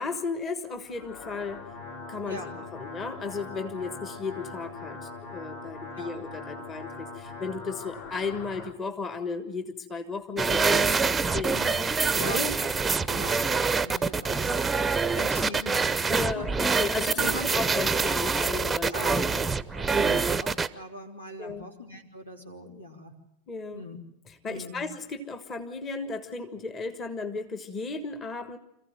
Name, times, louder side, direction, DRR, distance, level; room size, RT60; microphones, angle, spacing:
voice 1, 0.0-1.7 2.1-11.6 12.1-12.5 16.1-19.5 21.4-21.6 23.5-23.8 24.3-28.6, left 4 dB, 25° left, 8 dB, 1.4 m, -35 dB
sound 1, 0.8-8.7, left 3 dB, 50° left, 3.0 m, -41 dB
voice 2, 2.2-2.6 6.0-6.1 11.5-11.8 12.2-12.4 13.1-14.7 15.1-16.5 17.1-17.6 18.9-23.1 23.7-24.0 24.5-24.8, equal, 85° left, 1 dB, 3.6 m, -41 dB
sound 2, 10.4-20.7, right 4 dB, 10° right, 0.7 m, -25 dB
26.5 x 15.0 x 7.8 m, 0.85 s
figure-of-eight pair, 90°, 0 cm